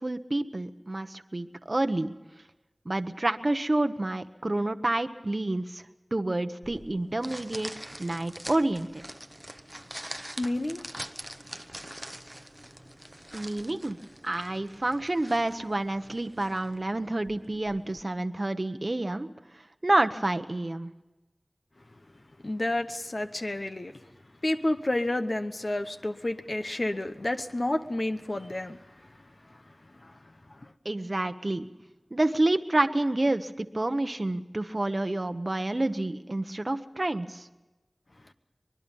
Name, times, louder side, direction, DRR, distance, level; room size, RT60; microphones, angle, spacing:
voice 1, 0.0-2.1 2.9-5.8 6.1-7.7 8.0-9.0 13.3-14.0 14.2-19.3 19.8-20.9 30.8-31.7 32.1-37.5, right 2 dB, 45° right, 8 dB, 0.9 m, -28 dB
sound 1, 6.6-18.0, right 1 dB, 15° right, 0.9 m, -44 dB
voice 2, 10.4-10.8 22.4-24.0 24.4-29.1 29.4-29.6 30.0-30.2 30.5-30.7, left 1 dB, 50° left, 7 dB, 1.0 m, -30 dB
24.0 x 21.0 x 5.4 m, 1.1 s
wide cardioid pair, 60°, 0 cm